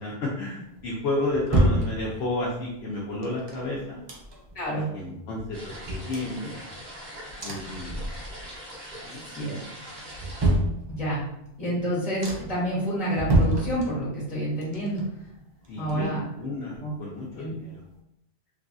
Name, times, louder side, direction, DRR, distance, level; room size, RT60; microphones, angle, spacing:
voice 1, 0.0-4.0 4.9-6.5 7.4-8.0 9.0-9.2 15.7-17.7, left 2 dB, 75° left, -5 dB, 0.9 m, -31 dB
sound 1, 0.8-2.5 3.2-4.7 5.0-5.1 5.4-7.0 7.4-8.6 8.9-9.4 9.8-11.3 11.8-11.9 12.2-12.7 13.1-14.3 14.6-16.4 16.7-16.8, right 1 dB, 40° right, 0.4 m, -28 dB
voice 2, 4.5-4.9 9.3-9.6 10.9-11.2 11.6-15.0 15.8-16.2 16.8-16.9 17.4-17.5, right 1 dB, 45° left, -6 dB, 1.3 m, -28 dB
sound 2, 5.5-10.5, equal, 70° right, 1.5 m, -42 dB
3.3 x 2.5 x 2.3 m, 0.80 s
omnidirectional pair, 1.1 m